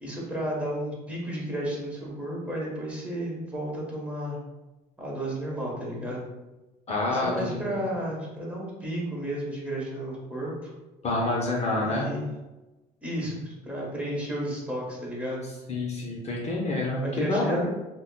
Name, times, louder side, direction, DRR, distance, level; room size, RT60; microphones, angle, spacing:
voice 1, 0.0-4.4 5.0-6.3 7.1-10.7 11.8-12.3 13.0-15.4 17.0-17.7, equal, 10° right, -5 dB, 1.1 m, -32 dB
voice 2, 6.9-7.8 11.0-12.1 15.7-17.7, left 2 dB, 40° left, -2 dB, 0.7 m, -28 dB
5.1 x 2.1 x 2.3 m, 1.1 s
cardioid pair, 110°, 17 cm